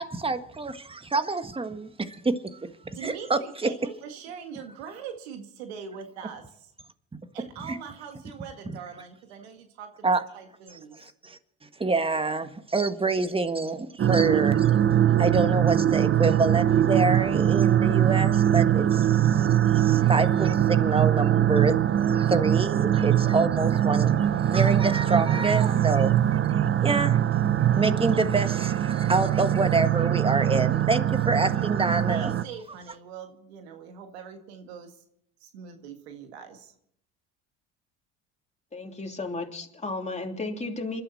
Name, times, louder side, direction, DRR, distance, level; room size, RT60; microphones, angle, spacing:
voice 1, 0.0-2.7 3.0-3.7 7.6-7.8 10.0-10.2 10.7-11.4 11.8-14.7 15.2-26.1 26.8-27.2 27.8-32.3, right 3 dB, 15° right, 1.6 m, -27 dB
voice 2, 2.9-6.7 7.3-11.1 32.1-35.0 35.4-36.7, right 7 dB, 90° right, 1.9 m, -42 dB
sound 1, 14.0-32.4, right 11 dB, 40° right, 0.9 m, -22 dB
voice 3, 38.7-41.0, left 3 dB, 20° left, 3.1 m, -33 dB
27.5 x 12.0 x 4.2 m
supercardioid pair, 75°, 31 cm